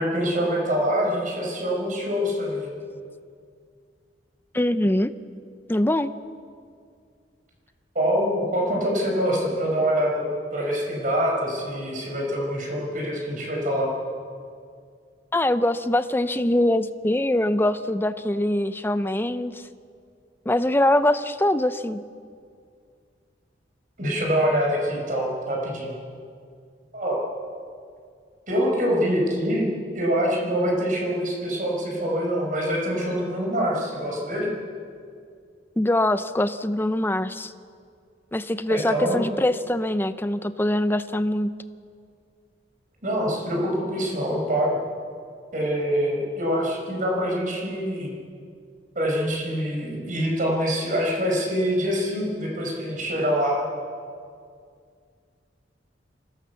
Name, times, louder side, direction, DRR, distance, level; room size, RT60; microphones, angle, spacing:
voice 1, 0.0-2.8 8.0-13.9 24.0-25.9 26.9-27.2 28.5-29.7 29.9-34.5 38.7-39.2 43.0-44.8 45.5-48.1 49.0-53.7, equal, 45° right, -1 dB, 5.3 m, -25 dB
voice 2, 4.5-5.1 5.7-6.1 15.3-19.6 20.5-22.0 35.8-37.5 38.3-41.5, left 1 dB, 10° left, 12 dB, 0.6 m, -23 dB
24.5 x 16.5 x 7.1 m, 2.2 s
head